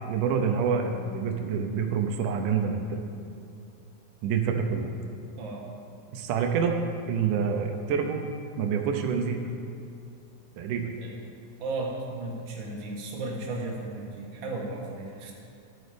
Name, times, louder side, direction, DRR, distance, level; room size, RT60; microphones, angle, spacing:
voice 1, 0.1-3.0 4.2-4.9 6.1-6.8 7.1-8.3 8.6-9.4 10.6-10.9, right 6 dB, 90° right, 4 dB, 2.4 m, -27 dB
voice 2, 5.4-5.7 11.0-11.1 11.6-15.3, right 2 dB, 45° right, -2 dB, 2.1 m, -35 dB
12.0 x 8.3 x 5.1 m, 2.6 s
omnidirectional pair, 3.6 m